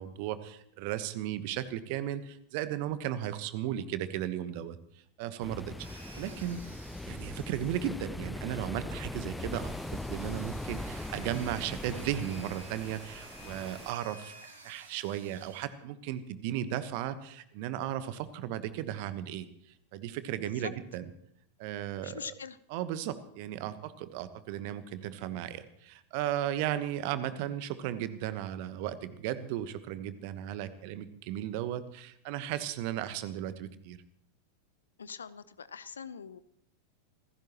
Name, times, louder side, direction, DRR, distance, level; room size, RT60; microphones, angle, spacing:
voice 1, 0.0-4.8 5.2-6.6 7.1-14.3 14.6-19.5 19.9-21.0 21.6-22.2 22.7-34.0, right 11 dB, 45° right, 13 dB, 1.2 m, -35 dB
sound 1, 5.4-13.9, left 2 dB, 5° left, 0.5 m, -40 dB
sound 2, 5.8-8.2 9.1-15.6, right 2 dB, 75° right, 3.6 m, -52 dB
voice 2, 20.4-20.7 22.0-22.6 35.0-36.4, left 6 dB, 70° left, 16 dB, 0.8 m, -43 dB
26.5 x 15.5 x 3.0 m, 0.71 s
figure-of-eight pair, 90°, 0 cm